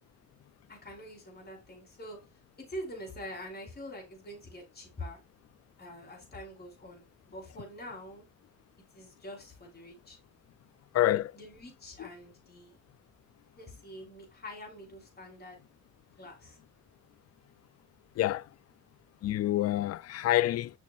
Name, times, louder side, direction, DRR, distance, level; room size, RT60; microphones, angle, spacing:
voice 1, 0.7-2.2 2.6-5.2 5.8-8.2 8.9-10.2 11.3-12.8 13.6-15.6 16.2-16.6, equal, 30° left, 4.1 m, -45 dB
voice 2, 10.9-11.3 18.2-18.4 19.2-20.7, left 14 dB, 55° left, 0.4 m, -27 dB
7.4 x 5.8 x 2.5 m
cardioid pair, 90°, 30 cm